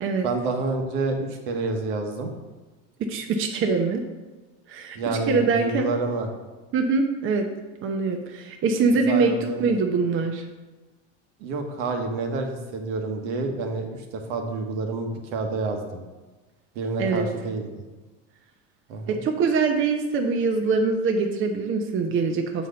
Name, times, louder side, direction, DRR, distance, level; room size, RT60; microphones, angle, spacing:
voice 1, 0.2-1.2 1.5-2.3 4.9-6.3 9.1-9.7 11.4-16.0 16.7-17.6 18.9-19.2, right 3 dB, 70° right, 3 dB, 1.4 m, -28 dB
voice 2, 3.0-4.0 4.7-5.9 6.7-7.5 7.8-9.3 9.6-10.4 17.0-17.3 19.1-22.7, right 4 dB, 35° right, 3 dB, 0.8 m, -23 dB
7.2 x 4.3 x 5.1 m, 1.2 s
supercardioid pair, 115°, 37 cm